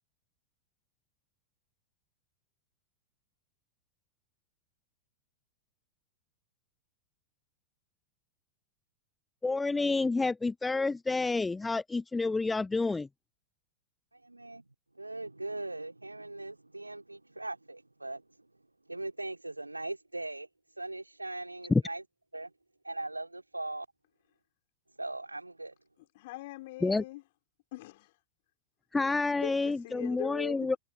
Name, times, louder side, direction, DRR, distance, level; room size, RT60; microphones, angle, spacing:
voice 1, 9.4-13.1 21.7-21.8 26.8-27.0 28.9-30.8, left 3 dB, 10° left, 0.5 m, -29 dB
voice 2, 14.1-14.7 14.9-18.5 18.9-22.0 22.3-22.5 22.8-23.9 25.0-25.7, right 2 dB, 85° right, 3.4 m, -40 dB
voice 3, 26.2-27.2 27.7-28.1 29.3-30.7, left 19 dB, 50° left, 5.7 m, -41 dB
figure-of-eight pair, 90°, 0 cm